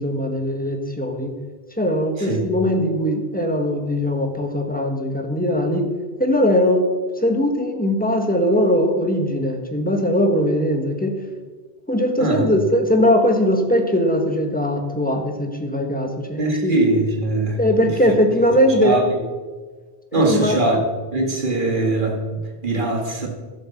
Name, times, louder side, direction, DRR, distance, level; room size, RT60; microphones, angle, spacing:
voice 1, 0.0-1.3 1.8-5.9 6.2-6.9 7.2-11.2 11.9-16.8 17.6-19.1 20.1-20.6, equal, 10° left, 3 dB, 1.5 m, -20 dB
voice 2, 16.4-18.0 18.8-19.2 20.1-20.8 21.1-23.3, right 2 dB, 50° right, 1 dB, 2.1 m, -21 dB
12.5 x 7.8 x 6.8 m, 1.4 s
omnidirectional pair, 1.1 m